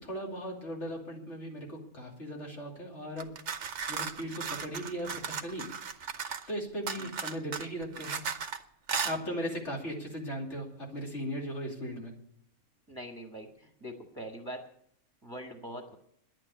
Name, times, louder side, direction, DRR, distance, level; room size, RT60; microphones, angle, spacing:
voice 1, 0.0-3.3 3.9-5.6 6.5-8.2 9.0-12.1, equal, 50° left, -1 dB, 3.1 m, -37 dB
sound 1, 3.2-6.5 6.9-8.6 8.9-9.2, right 6 dB, 55° right, 1.1 m, -36 dB
voice 2, 12.9-14.6 15.2-16.0, equal, 15° right, 2 dB, 1.5 m, -43 dB
11.0 x 9.0 x 9.5 m, 0.70 s
omnidirectional pair, 1.6 m